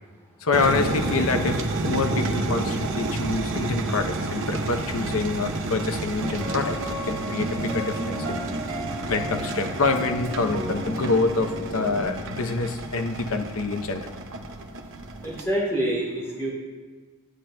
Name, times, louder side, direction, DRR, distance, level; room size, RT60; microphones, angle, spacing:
voice 1, 0.4-6.8 7.1-8.4 9.1-14.1, left 3 dB, 70° left, 7 dB, 0.7 m, -26 dB
sound 1, 0.5-15.4, right 2 dB, 60° right, 0.8 m, -30 dB
sound 2, 6.2-12.0, right 1 dB, 80° right, 1.9 m, -33 dB
voice 2, 15.2-16.5, right 1 dB, 10° left, -5 dB, 2.6 m, -26 dB
13.0 x 10.0 x 2.2 m, 1.4 s
head